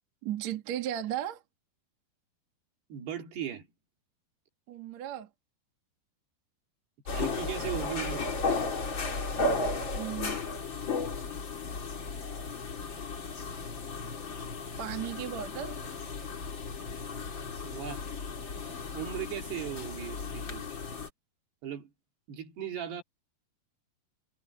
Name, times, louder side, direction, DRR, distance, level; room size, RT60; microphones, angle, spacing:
voice 1, 0.2-1.4 4.7-5.3 9.9-10.4 14.8-15.8, right 11 dB, 50° right, 2.8 m, -35 dB
voice 2, 2.9-3.7 7.1-8.3 17.6-18.1 18.9-20.6 21.6-21.9 22.3-23.0, right 10 dB, 75° right, 4.6 m, -37 dB
sound 1, 7.1-21.1, left 3 dB, 35° left, 2.8 m, -35 dB
omnidirectional pair, 4.8 m